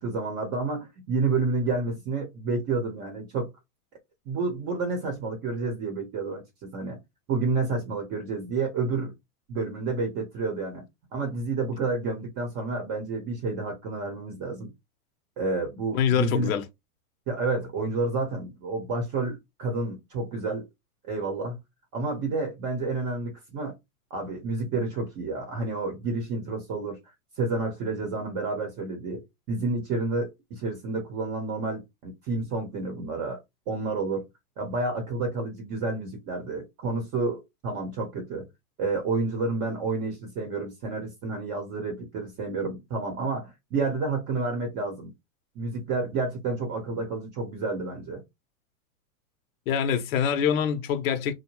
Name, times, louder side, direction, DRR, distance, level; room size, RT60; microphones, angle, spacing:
voice 1, 0.0-3.5 4.3-7.0 7.3-9.1 9.5-10.8 11.1-14.7 15.4-16.5 17.3-20.7 21.1-21.6 21.9-23.8 24.1-27.0 27.4-33.4 33.7-34.2 34.6-38.5 38.8-45.1 45.5-48.2, right 3 dB, 30° right, 0.8 m, -30 dB
voice 2, 15.9-16.6 49.7-51.3, left 8 dB, 65° left, 0.7 m, -24 dB
2.7 x 2.2 x 3.0 m
hypercardioid pair, 135°, 44 cm